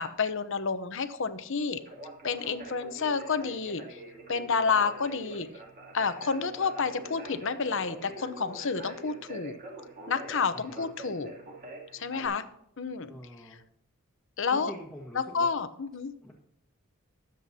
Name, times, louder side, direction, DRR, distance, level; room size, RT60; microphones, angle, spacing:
voice 1, 0.0-1.8 2.2-4.0 4.3-5.5 5.9-9.5 10.1-11.3 11.9-12.4 12.8-13.1 14.4-14.7 15.1-16.1, left 5 dB, 65° left, 11 dB, 0.9 m, -30 dB
Conversation, 1.8-12.3, right 2 dB, 45° right, 2.8 m, -45 dB
voice 2, 10.5-10.9 13.1-13.6 14.5-15.5 16.2-16.3, equal, ahead, -5 dB, 1.6 m, -45 dB
20.5 x 7.9 x 2.8 m, 0.74 s
head